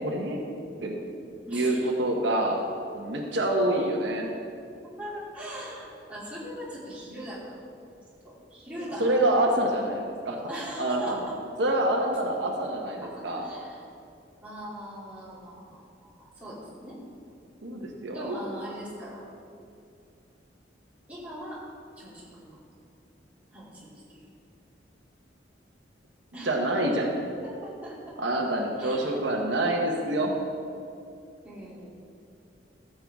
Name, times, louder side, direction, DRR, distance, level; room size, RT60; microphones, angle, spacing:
voice 1, 0.0-0.4 0.8-1.0 1.5-2.6 2.9-4.3 9.0-10.4 10.8-11.2 11.6-13.4 17.6-18.4 26.5-27.1 28.2-30.3, right 1 dB, 80° right, 1 dB, 1.1 m, -26 dB
voice 2, 1.5-1.9 5.0-7.6 8.2-9.2 10.5-11.2 12.5-12.6 13.0-13.8 14.4-17.0 17.7-19.2 21.1-21.6 22.0-22.6 23.5-24.2 26.3-26.5 27.4-28.0 28.8-29.1 31.4-31.9, equal, 10° right, -9 dB, 2.8 m, -40 dB
14.0 x 7.7 x 3.5 m, 2.5 s
head